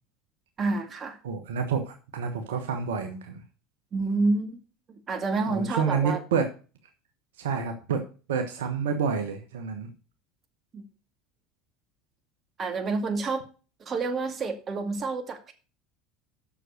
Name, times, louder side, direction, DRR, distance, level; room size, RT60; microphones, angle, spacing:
voice 1, 0.6-1.2 3.9-4.6 4.9-6.2 10.7-10.8 12.6-13.4 13.9-15.5, right 3 dB, 35° right, 6 dB, 2.1 m, -28 dB
voice 2, 1.2-3.4 5.5-6.4 7.4-8.0 8.3-9.9, right 6 dB, 75° right, 6 dB, 1.2 m, -28 dB
7.6 x 6.4 x 6.4 m, 0.35 s
hypercardioid pair, 75°, 0 cm